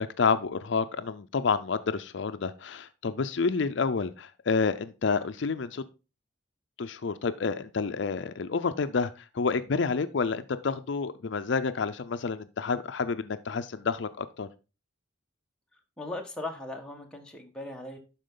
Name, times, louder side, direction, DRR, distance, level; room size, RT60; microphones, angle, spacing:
voice 1, 0.0-5.8 6.8-14.5, left 5 dB, 65° left, 12 dB, 0.5 m, -29 dB
voice 2, 16.0-18.0, left 2 dB, 5° left, 1 dB, 1.4 m, -38 dB
11.5 x 4.5 x 3.8 m, 0.31 s
head